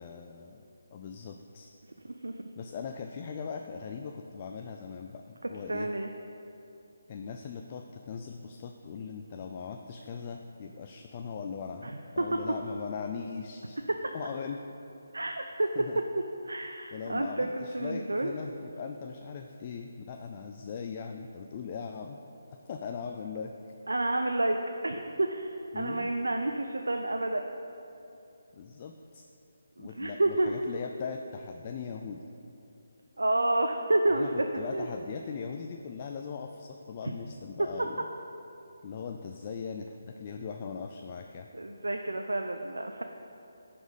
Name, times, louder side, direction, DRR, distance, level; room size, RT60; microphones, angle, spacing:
voice 1, 0.0-1.7 2.6-5.9 7.1-11.9 12.2-13.8 14.1-14.6 15.8-16.0 16.9-22.2 22.7-23.7 25.7-26.1 28.5-29.2 29.8-32.3 34.1-38.1 38.8-41.5, left 6 dB, 35° left, 4 dB, 0.4 m, -40 dB
voice 2, 5.7-6.1 11.8-12.4 14.0-14.1 15.1-15.7 16.4-18.3 23.9-24.6 24.8-27.5 29.8-30.5 33.2-34.4 34.7-34.9 37.0-37.1 41.5-43.0, right 2 dB, 80° right, 4 dB, 0.5 m, -29 dB
10.5 x 4.3 x 5.1 m, 2.8 s
figure-of-eight pair, 150°, 0 cm